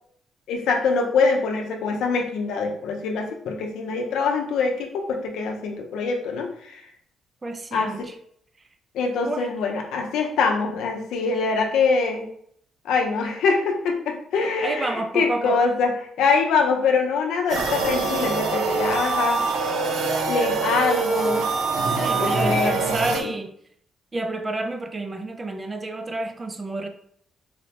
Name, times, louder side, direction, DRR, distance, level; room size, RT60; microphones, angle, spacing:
voice 1, 0.5-6.8 7.7-7.9 8.9-12.3 12.8-15.9 16.2-19.4 20.3-21.5 22.2-23.3, left 4 dB, 85° left, 0.6 m, -24 dB
voice 2, 7.4-8.2 9.2-9.5 14.6-15.6 21.9-23.5 24.1-26.9, right 2 dB, 25° right, 0.4 m, -29 dB
sound 1, 17.5-23.2, right 4 dB, 80° right, 0.5 m, -24 dB
4.0 x 2.1 x 2.8 m
cardioid pair, 90°, 0 cm